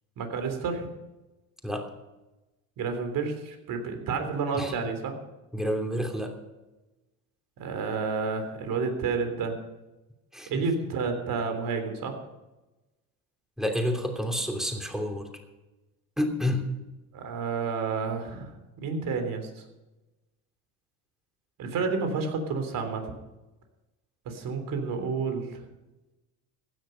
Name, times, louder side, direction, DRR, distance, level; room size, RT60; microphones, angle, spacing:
voice 1, 0.2-0.9 2.8-5.1 7.6-9.6 10.5-12.2 17.1-18.5 18.8-19.6 21.6-23.1 24.3-25.7, right 4 dB, 55° right, 6 dB, 3.4 m, -30 dB
voice 2, 5.5-6.4 10.3-10.6 13.6-15.3 16.2-16.7, equal, ahead, 3 dB, 3.0 m, -29 dB
16.0 x 10.5 x 5.8 m, 1.0 s
supercardioid pair, 100°, 39 cm